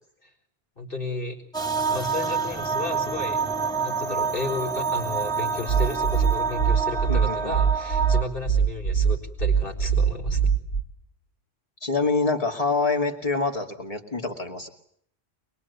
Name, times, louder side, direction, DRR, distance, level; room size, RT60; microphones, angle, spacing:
voice 1, 0.8-1.4 1.9-3.4 3.8-10.4, left 3 dB, 60° left, 2 dB, 4.5 m, -33 dB
sound 1, 1.5-8.2, right 6 dB, 5° left, 2.6 m, -27 dB
sound 2, 5.7-10.8, right 7 dB, 75° left, 4.9 m, -22 dB
voice 2, 7.1-7.6 11.8-14.7, left 3 dB, 35° left, 3 dB, 2.7 m, -26 dB
24.0 x 22.5 x 9.6 m, 0.67 s
omnidirectional pair, 1.1 m